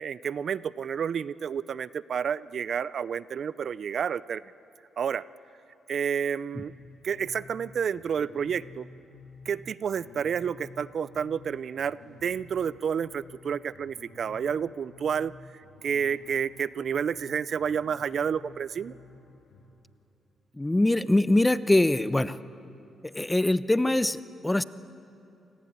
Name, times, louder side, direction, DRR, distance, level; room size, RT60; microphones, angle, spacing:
voice 1, 0.0-4.4 5.0-5.2 5.9-6.7 7.0-8.9 9.5-15.3 15.8-18.9, right 7 dB, 65° right, 18 dB, 0.5 m, -30 dB
sound 1, 6.6-19.6, left 4 dB, 85° left, 6.7 m, -52 dB
voice 2, 20.6-22.4 23.0-24.6, left 1 dB, 15° left, 14 dB, 1.0 m, -23 dB
28.0 x 19.0 x 9.6 m, 2.7 s
supercardioid pair, 55°, 0 cm